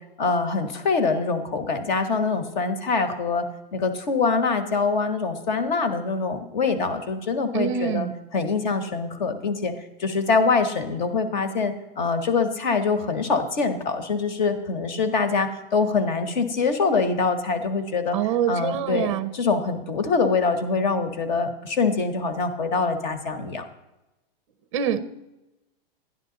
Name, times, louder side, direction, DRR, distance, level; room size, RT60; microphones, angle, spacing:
voice 1, 0.2-3.5 3.7-8.1 8.3-9.7 10.0-18.2 18.5-23.6, left 4 dB, 50° left, 10 dB, 1.3 m, -24 dB
voice 2, 7.5-8.1 18.1-19.3 24.7-25.0, right 9 dB, 35° right, 14 dB, 0.5 m, -25 dB
12.0 x 11.0 x 3.9 m, 0.99 s
supercardioid pair, 175°, 30 cm